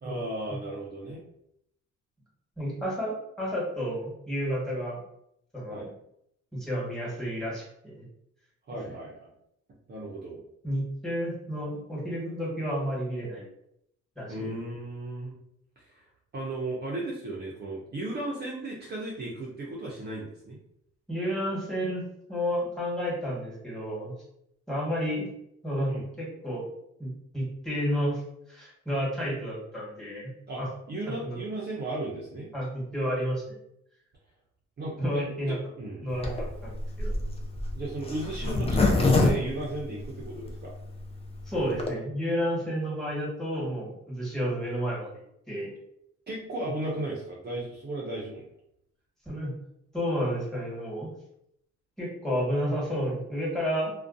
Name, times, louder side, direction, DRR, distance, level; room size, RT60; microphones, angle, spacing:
voice 1, 0.0-1.3 5.7-5.9 8.7-9.3 9.9-10.4 14.3-15.4 15.8-16.0 16.3-20.6 25.9-26.1 30.5-30.6 30.9-32.5 34.8-36.1 37.7-40.7 46.3-48.5, right 2 dB, 35° right, -4 dB, 0.6 m, -35 dB
voice 2, 2.6-5.0 5.5-5.8 6.5-8.0 10.6-13.4 14.1-14.5 21.1-22.0 22.3-24.1 24.7-25.3 25.6-26.6 27.0-28.2 28.5-30.3 30.6-30.7 31.2-31.4 32.5-33.6 34.8-35.6 36.0-36.3 36.6-36.7 37.0-37.2 41.5-45.1 45.5-45.7 49.2-49.5 49.9-51.1 52.0-53.9, equal, ahead, -5 dB, 1.4 m, -31 dB
Zipper (clothing), 36.2-40.5 41.0-41.1 41.3-41.4 41.6-41.9, left 2 dB, 20° left, 0.5 m, -25 dB
2.5 x 2.2 x 2.5 m, 0.76 s
cardioid pair, 90°, 30 cm